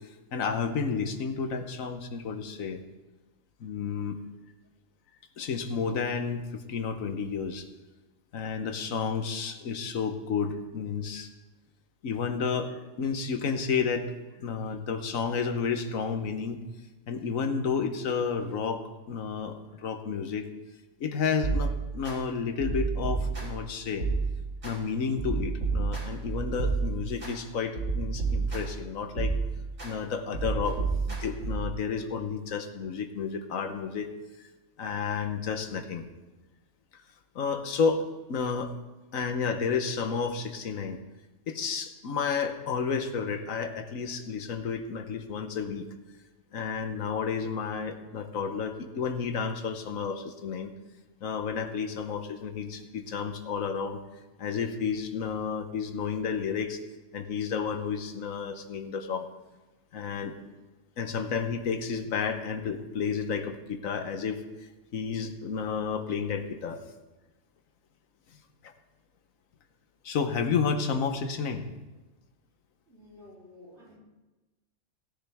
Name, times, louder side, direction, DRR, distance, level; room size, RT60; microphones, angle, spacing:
voice 1, 0.3-2.8 3.6-4.2 5.4-7.7 8.3-11.3 12.0-16.6 17.1-20.5 21.0-24.0 24.6-29.4 29.8-34.1 34.8-36.1 37.3-38.7 39.1-41.0 41.5-45.9 46.5-50.7 51.2-54.0 54.4-56.8 57.1-59.3 59.9-60.3 61.0-64.4 64.9-66.9 68.6-68.7 70.0-71.6, left 5 dB, 85° left, 7 dB, 1.4 m, -31 dB
sound 1, 21.4-22.1 22.6-23.7 24.0-24.7 25.2-27.3 27.7-28.8 29.2-29.9 30.3-31.7, right 4 dB, 90° right, 4.3 m, -30 dB
voice 2, 72.9-74.0, left 1 dB, 55° right, -5 dB, 3.7 m, -52 dB
17.5 x 10.0 x 3.5 m, 1.1 s
omnidirectional pair, 1.4 m